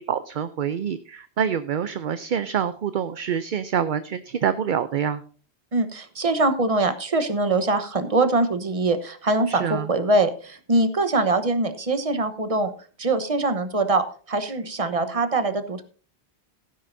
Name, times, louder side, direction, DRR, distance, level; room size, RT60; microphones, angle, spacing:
voice 1, 0.0-5.2 9.5-9.9 14.9-15.2, right 8 dB, 55° right, 12 dB, 0.7 m, -26 dB
voice 2, 5.7-12.7 13.0-15.8, right 2 dB, 35° right, 10 dB, 1.1 m, -23 dB
16.5 x 10.0 x 2.6 m, 0.41 s
omnidirectional pair, 1.1 m